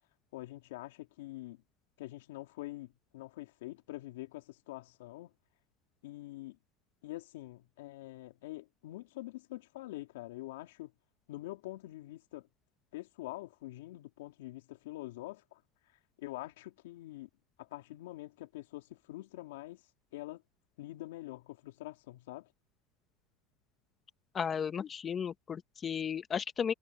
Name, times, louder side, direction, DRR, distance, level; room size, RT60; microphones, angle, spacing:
voice 1, 0.3-1.6 2.0-5.3 6.0-6.6 7.0-10.9 11.3-12.5 12.9-15.6 16.2-17.3 17.6-19.8 20.1-20.4 20.8-22.5, left 17 dB, 80° left, 3.6 m, -45 dB
voice 2, 24.3-26.7, left 7 dB, 25° left, 1.5 m, -34 dB
supercardioid pair, 120°, 0 cm